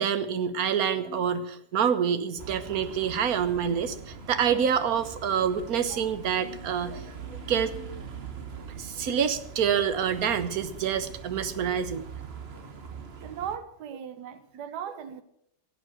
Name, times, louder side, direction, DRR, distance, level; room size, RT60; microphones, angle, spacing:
voice 1, 0.0-7.0 7.3-8.0 8.8-12.0, right 8 dB, 65° right, 1.5 m, -27 dB
sound 1, 2.4-13.6, right 5 dB, 40° right, 1.4 m, -42 dB
voice 2, 13.2-15.2, right 8 dB, 80° right, 1.5 m, -37 dB
16.0 x 8.6 x 7.6 m
omnidirectional pair, 1.8 m